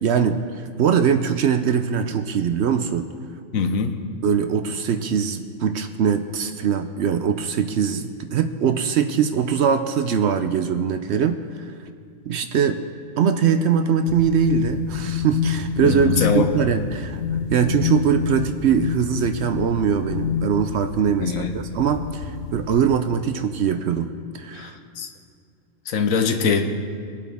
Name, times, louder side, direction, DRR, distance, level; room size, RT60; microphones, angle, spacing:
voice 1, 0.0-3.1 4.2-11.4 12.3-12.8 13.2-17.2 17.5-24.1 24.3-24.8, right 7 dB, 65° right, 9 dB, 0.8 m, -22 dB
voice 2, 3.5-4.0 15.8-16.5 21.2-21.6 24.5-25.1 25.9-26.6, left 5 dB, 80° left, 7 dB, 1.3 m, -23 dB
sound 1, 14.1-23.0, left 7 dB, 55° left, 0.7 m, -28 dB
20.5 x 8.2 x 3.5 m, 2.2 s
omnidirectional pair, 1.4 m